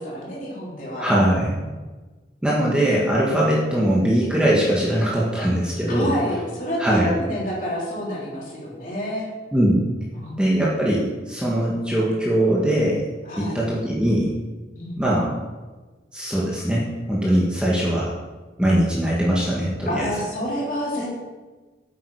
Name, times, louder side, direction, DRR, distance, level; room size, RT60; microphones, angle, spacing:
voice 1, 0.0-1.1 1.6-1.7 5.9-9.3 10.1-10.7 13.2-13.6 14.7-15.1 19.9-21.2, equal, 45° left, -5 dB, 3.6 m, -29 dB
voice 2, 1.0-1.6 2.4-6.1 6.8-7.1 9.5-9.8 10.4-13.0 13.4-14.3 15.0-15.4 16.1-18.1 18.6-20.1, right 1 dB, 5° right, -6 dB, 1.5 m, -21 dB
9.3 x 8.6 x 4.9 m, 1.3 s
head